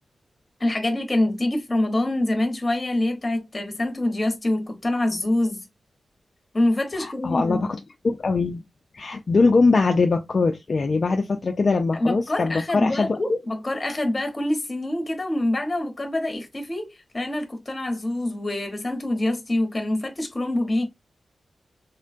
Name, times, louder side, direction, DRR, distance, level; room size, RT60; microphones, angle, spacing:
voice 1, 0.6-5.6 6.5-7.7 11.9-20.9, left 1 dB, 20° left, 0.8 m, -25 dB
voice 2, 7.0-7.7 8.0-8.6 8.9-13.2, left 3 dB, 45° left, 0.3 m, -22 dB
3.6 x 2.2 x 2.4 m
wide cardioid pair, 160°, 0 cm